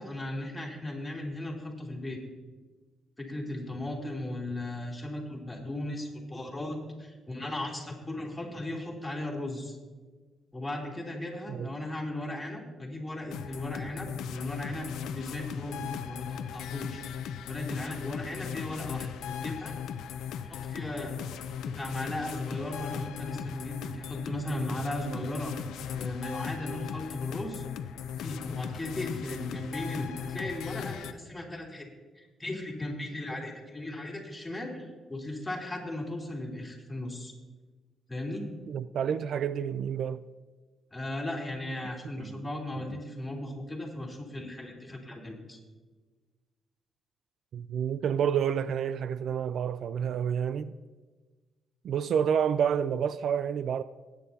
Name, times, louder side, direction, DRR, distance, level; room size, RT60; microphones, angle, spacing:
voice 1, 0.0-2.2 3.2-9.8 10.5-17.0 17.4-19.7 20.5-21.2 21.6-25.5 25.9-27.6 28.2-31.9 32.1-37.3 38.1-38.5 40.9-45.6, left 1 dB, 15° left, 3.0 m, -37 dB
sound 1, 13.3-31.1, left 8 dB, 90° left, 0.6 m, -38 dB
voice 2, 38.7-40.2 42.2-42.5 47.5-50.7 51.8-53.8, right 8 dB, 70° right, 0.3 m, -29 dB
20.0 x 9.3 x 2.8 m
cardioid pair, 100°, 0 cm